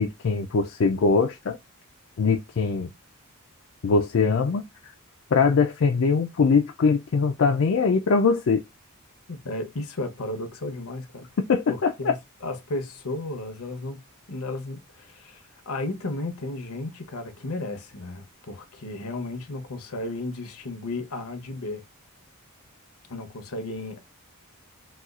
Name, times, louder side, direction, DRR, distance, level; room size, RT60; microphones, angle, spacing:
voice 1, 0.0-1.6 2.2-2.9 3.8-4.9 5.3-8.6 11.5-12.2, left 4 dB, 60° left, 0.4 m, -22 dB
voice 2, 9.3-11.3 11.7-12.2 12.4-14.0 14.3-21.8 23.1-24.0, left 2 dB, 75° left, 0.9 m, -34 dB
4.1 x 2.3 x 2.4 m
head